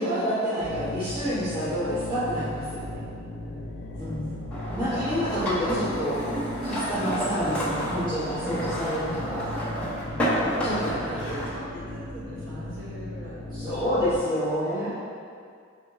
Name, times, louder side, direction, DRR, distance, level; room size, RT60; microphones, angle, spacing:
voice 1, 0.0-3.0 4.0-4.3 4.7-6.2 6.6-9.5 10.6-11.2 13.5-14.9, equal, 25° right, -15 dB, 1.2 m, -28 dB
sound 1, 0.6-14.2, left 1 dB, 80° left, 0.6 m, -37 dB
voice 2, 3.4-3.8 4.0-4.5 10.0-10.4 10.7-13.9 14.6-14.9, equal, 75° right, -9 dB, 1.1 m, -42 dB
sound 2, 4.5-11.5, equal, 5° left, 0.7 m, -30 dB
4.3 x 3.6 x 3.1 m, 2.3 s
head